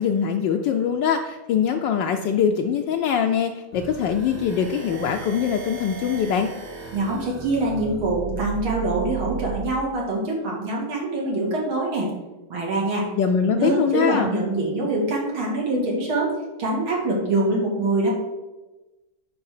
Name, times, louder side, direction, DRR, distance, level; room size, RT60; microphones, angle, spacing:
voice 1, 0.0-6.5 13.2-14.3, left 7 dB, 75° left, 4 dB, 1.2 m, -23 dB
sound 1, 3.7-9.6, right 6 dB, 30° right, 0.8 m, -35 dB
voice 2, 6.9-12.1 12.5-13.0 13.4-16.3 16.6-18.1, right 2 dB, 90° right, -3 dB, 2.9 m, -24 dB
9.5 x 3.6 x 6.6 m, 1.1 s
omnidirectional pair, 2.2 m